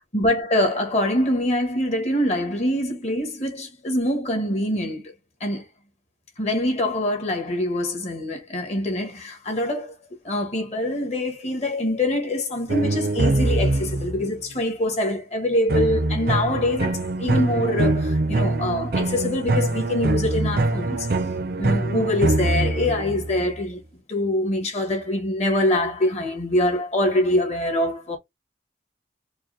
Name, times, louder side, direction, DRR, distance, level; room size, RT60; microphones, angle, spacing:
voice 1, 0.1-5.1 5.4-5.6 6.4-9.9 10.2-21.1 21.6-23.8 24.1-28.2, left 1 dB, 35° left, 1.3 m, -24 dB
sound 1, 12.7-14.3 15.7-23.4, right 2 dB, 55° right, 0.6 m, -23 dB
4.6 x 2.2 x 3.0 m
head